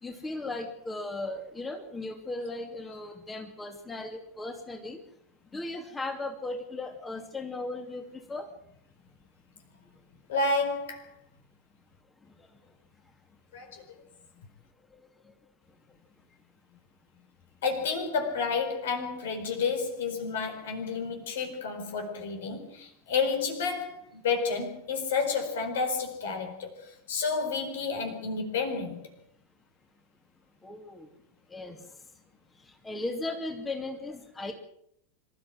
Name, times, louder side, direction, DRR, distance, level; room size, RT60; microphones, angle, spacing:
voice 1, 0.0-5.0 5.5-8.5 30.6-31.1 31.5-31.8 32.8-34.5, left 2 dB, 15° left, 2.7 m, -36 dB
voice 2, 10.3-11.1 13.5-13.8 17.6-29.0, left 4 dB, 65° left, 4.5 m, -30 dB
26.0 x 13.5 x 7.7 m
figure-of-eight pair, 90°, 0 cm